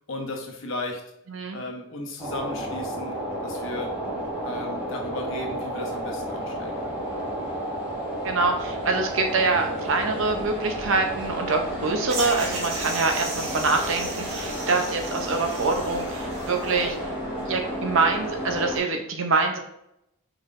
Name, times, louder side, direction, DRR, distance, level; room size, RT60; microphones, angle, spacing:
voice 1, 0.1-1.0 1.5-4.0 4.4-7.0, left 1 dB, 60° left, 1 dB, 0.9 m, -35 dB
sound 1, 2.2-18.8, equal, 5° right, 1.6 m, -32 dB
voice 2, 8.2-17.1 17.5-19.6, right 3 dB, 60° right, 4 dB, 0.6 m, -25 dB
sound 2, 9.5-18.6, left 1 dB, 85° left, 0.5 m, -44 dB
sound 3, 12.1-16.8, right 3 dB, 90° right, 1.0 m, -35 dB
4.5 x 3.9 x 2.5 m, 0.80 s
head